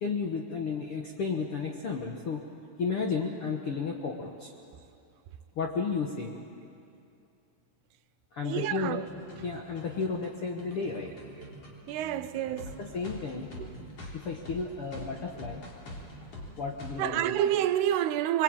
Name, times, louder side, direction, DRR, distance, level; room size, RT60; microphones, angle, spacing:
voice 1, 0.0-2.4 2.8-4.5 5.5-6.3 8.3-9.0 9.4-11.1 12.8-13.5 14.1-15.6 16.6-17.4, left 5 dB, 60° left, 1.5 m, -33 dB
voice 2, 8.4-9.0 11.9-12.8 17.0-18.4, right 12 dB, 90° right, 2.9 m, -28 dB
sound 1, 9.1-17.1, left 1 dB, 40° left, 4.0 m, -45 dB
24.5 x 23.5 x 8.9 m
omnidirectional pair, 4.5 m